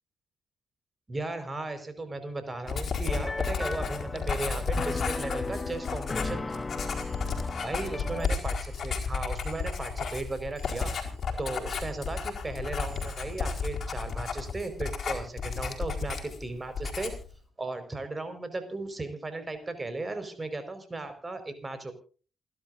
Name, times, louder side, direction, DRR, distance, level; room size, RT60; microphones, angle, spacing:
voice 1, 1.1-6.7 7.6-11.0 11.4-17.1 17.6-21.9, right 2 dB, 25° right, 9 dB, 4.9 m, -36 dB
Writing, 2.7-16.5 16.7-17.3, left 5 dB, 50° left, 4.5 m, -32 dB
sound 1, 3.1-8.3, left 3 dB, 25° left, 0.6 m, -36 dB
sound 2, 6.9-15.3, right 8 dB, 60° right, 7.9 m, -60 dB
28.5 x 11.5 x 2.6 m, 0.39 s
figure-of-eight pair, 40°, 0 cm